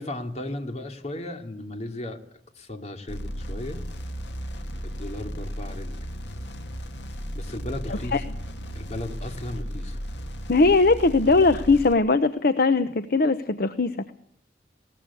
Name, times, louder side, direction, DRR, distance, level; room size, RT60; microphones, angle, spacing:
voice 1, 0.0-2.2 2.5-3.8 4.8-6.0 6.3-6.4 7.3-8.2 8.7-10.0, left 1 dB, 40° left, 5 dB, 2.7 m, -35 dB
sound 1, 3.1-11.9, equal, 85° left, 2.4 m, -35 dB
voice 2, 7.9-8.2 10.5-14.1, left 3 dB, 60° left, 11 dB, 0.9 m, -20 dB
21.5 x 18.5 x 8.4 m, 0.71 s
head